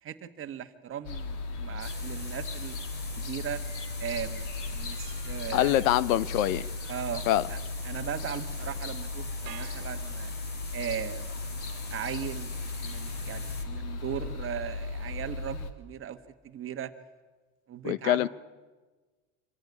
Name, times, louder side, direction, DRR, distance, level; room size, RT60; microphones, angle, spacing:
voice 1, 0.0-2.8 3.2-3.6 4.0-5.8 6.9-7.6 7.8-10.3 10.7-11.3 11.7-12.5 12.8-16.2 16.4-16.9 17.7-18.3, right 10 dB, 30° right, 1.5 m, -38 dB
sound 1, 1.0-15.7, left 3 dB, 50° left, 2.3 m, -36 dB
sound 2, 1.8-13.6, left 2 dB, 25° left, 3.2 m, -45 dB
voice 2, 5.5-6.7 7.3-7.4 17.8-18.3, left 14 dB, 80° left, 0.9 m, -24 dB
sound 3, 9.5-10.8, right 16 dB, 55° right, 1.7 m, -48 dB
26.0 x 15.0 x 9.7 m
supercardioid pair, 130°, 40 cm